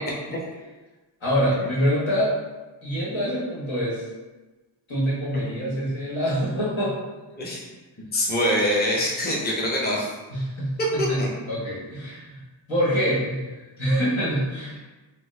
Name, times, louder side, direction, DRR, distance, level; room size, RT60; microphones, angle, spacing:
voice 1, 1.2-2.3 2.8-4.0 4.9-6.9 10.3-10.8 11.1-12.4 12.7-14.8, equal, 80° left, -7 dB, 1.3 m, -25 dB
voice 2, 8.1-10.1 11.0-11.3, left 1 dB, 20° left, -3 dB, 0.7 m, -24 dB
3.7 x 2.0 x 3.2 m, 1.2 s
cardioid pair, 50°, 46 cm